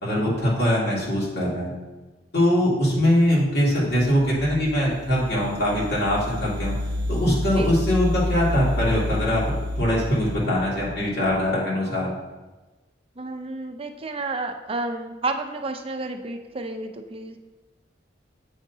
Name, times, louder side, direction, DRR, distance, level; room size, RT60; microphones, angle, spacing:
voice 1, 0.0-1.7 2.3-6.8 7.1-12.1, equal, 65° left, -6 dB, 2.3 m, -22 dB
sound 1, 3.9-11.4, left 1 dB, 65° right, 0.8 m, -30 dB
voice 2, 13.2-17.4, right 2 dB, 30° right, 5 dB, 0.5 m, -31 dB
8.0 x 5.7 x 2.8 m, 1.2 s
head